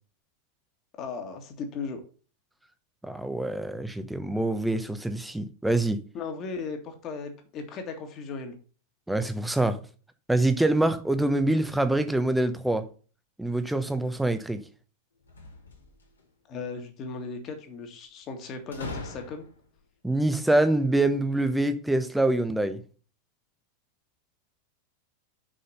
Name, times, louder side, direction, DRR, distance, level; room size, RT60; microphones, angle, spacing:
voice 1, 1.0-2.0 6.1-8.6 16.5-19.5, left 4 dB, 35° left, 1.9 m, -37 dB
voice 2, 3.0-6.0 9.1-9.8 10.3-12.9 13.4-14.6 20.0-22.8, right 2 dB, 5° right, 0.9 m, -25 dB
sound 1, 15.2-16.2 18.7-19.8, left 3 dB, 75° left, 2.3 m, -41 dB
6.4 x 5.7 x 5.5 m
figure-of-eight pair, 90°, 0 cm